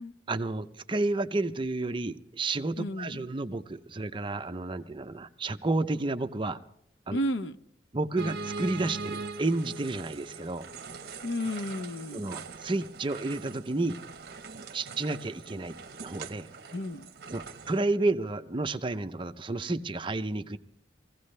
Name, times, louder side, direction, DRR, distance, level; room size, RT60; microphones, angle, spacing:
voice 1, 0.3-6.6 7.1-7.2 7.9-10.7 12.1-14.0 14.7-16.5 17.3-20.6, right 2 dB, 25° right, 0.6 m, -31 dB
voice 2, 2.8-3.2 7.1-7.6 11.2-12.2 16.7-17.1, equal, 80° left, 0.7 m, -32 dB
sound 1, 8.2-17.8, right 4 dB, 55° right, 0.9 m, -41 dB
22.0 x 16.0 x 3.3 m
head